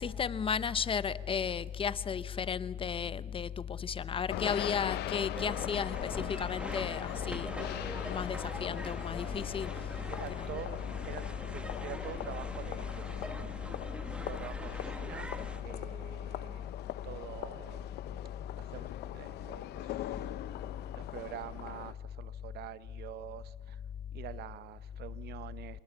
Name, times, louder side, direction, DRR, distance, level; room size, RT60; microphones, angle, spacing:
voice 1, 0.0-7.5 8.0-9.9 10.4-10.5, left 7 dB, 30° left, 17 dB, 0.7 m, -34 dB
sound 1, 4.3-21.9, left 13 dB, 75° left, 0.8 m, -41 dB
sound 2, 5.3-15.6, right 1 dB, 5° right, 1.4 m, -44 dB
voice 2, 10.1-13.5 14.3-16.7 17.0-17.9 18.6-20.3 20.9-23.8 24.1-25.8, right 13 dB, 75° right, 16 dB, 0.8 m, -46 dB
26.5 x 19.5 x 7.3 m, 1.5 s
cardioid pair, 110°, 17 cm